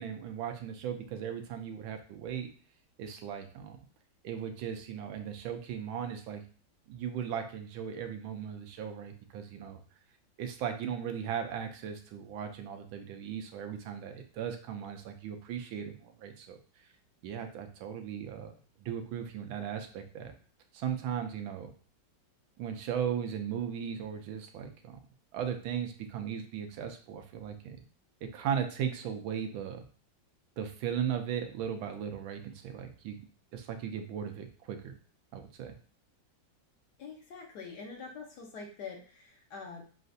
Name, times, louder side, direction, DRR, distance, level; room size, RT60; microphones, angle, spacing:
voice 1, 0.0-2.5 3.0-3.8 4.2-6.4 6.9-9.8 10.4-16.6 17.2-18.5 18.8-20.3 20.7-21.7 22.6-25.0 25.3-27.8 28.3-29.8 30.6-33.2 33.5-34.9 35.3-35.7, right 8 dB, 90° right, 6 dB, 1.5 m, -37 dB
voice 2, 37.0-39.8, left 5 dB, 65° left, 1 dB, 1.3 m, -45 dB
6.5 x 2.4 x 2.6 m, 0.40 s
omnidirectional pair, 2.1 m